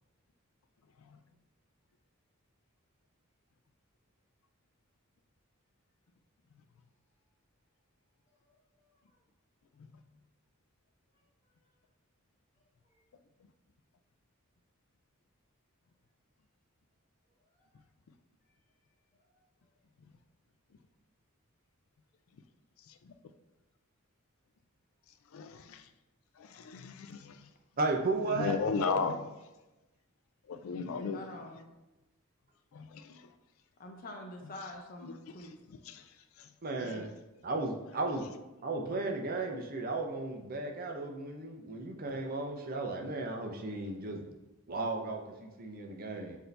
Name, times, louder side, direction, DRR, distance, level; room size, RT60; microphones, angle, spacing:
voice 1, 8.3-9.2 11.1-11.8 12.5-13.1 17.3-17.8 18.4-18.6 19.1-19.8, left 1 dB, 15° left, 1.1 m, -77 dB
voice 2, 25.3-25.8 26.4-27.5 28.3-29.2 30.5-31.2 32.7-33.3 35.0-35.1 35.9-36.0 36.4-36.5 36.8-37.0, left 5 dB, 65° left, 0.4 m, -35 dB
voice 3, 27.8-29.0 36.6-37.1 37.4-38.2 38.6-44.3 44.7-46.4, right 3 dB, 45° right, 0.6 m, -35 dB
voice 4, 31.1-31.7 33.8-35.5, left 1 dB, 40° left, 0.7 m, -45 dB
6.0 x 2.7 x 3.3 m
head